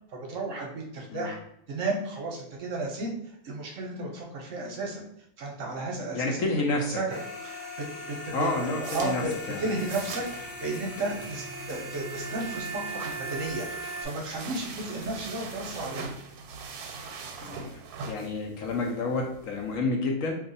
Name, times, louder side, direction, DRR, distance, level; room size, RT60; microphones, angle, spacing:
voice 1, 0.1-1.4 1.7-5.0 5.4-6.5 6.9-7.2 7.4-9.3 9.6-16.0, right 2 dB, 65° right, 0 dB, 0.9 m, -33 dB
voice 2, 6.1-7.0 8.3-9.2 9.5-9.6 17.4-20.4, left 2 dB, 70° left, 1 dB, 0.9 m, -29 dB
sound 1, 7.1-14.0, right 1 dB, 15° left, 1.1 m, -38 dB
sound 2, 8.4-19.8, right 4 dB, 90° right, 1.1 m, -42 dB
sound 3, 8.6-16.2, left 4 dB, 85° left, 1.1 m, -53 dB
2.6 x 2.4 x 3.9 m, 0.73 s
omnidirectional pair, 1.6 m